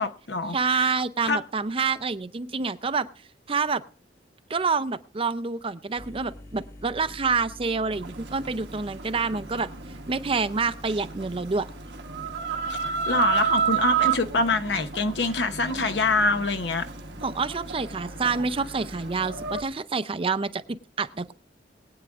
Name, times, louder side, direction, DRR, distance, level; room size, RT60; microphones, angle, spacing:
voice 1, 0.0-1.0 1.3-1.4 12.7-16.9, left 3 dB, 75° left, 0.9 m, -25 dB
voice 2, 0.5-3.1 3.5-3.8 4.5-9.7 10.1-11.7 17.2-21.3, right 4 dB, 30° right, 0.5 m, -27 dB
sound 1, 6.0-19.7, left 1 dB, 55° left, 2.1 m, -45 dB
Chicken rooster, 7.9-19.6, right 7 dB, 80° right, 1.2 m, -31 dB
22.0 x 8.8 x 2.5 m
head